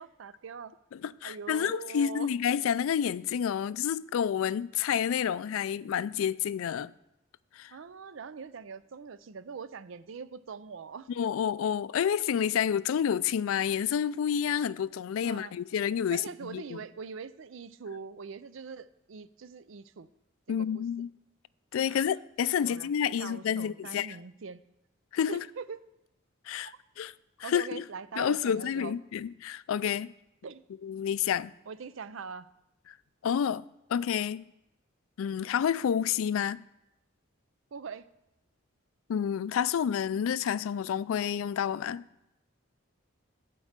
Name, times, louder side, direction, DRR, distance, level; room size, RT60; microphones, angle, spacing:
voice 1, 0.0-0.8 1.2-2.3 7.7-11.1 15.2-15.5 16.1-20.1 20.7-20.8 21.9-22.1 22.6-22.9 23.2-24.6 25.3-25.8 27.4-28.9 30.4-30.6 31.7-32.5 37.7-38.1, right 5 dB, 75° right, 0.5 m, -42 dB
voice 2, 0.9-6.9 7.6-7.7 11.2-16.8 20.5-21.1 21.7-24.2 25.1-25.4 26.5-27.1 27.4-27.8 28.2-30.1 30.8-31.5 33.2-34.4 35.2-36.6 39.1-42.1, left 8 dB, 85° left, 0.3 m, -29 dB
13.0 x 4.6 x 7.3 m
head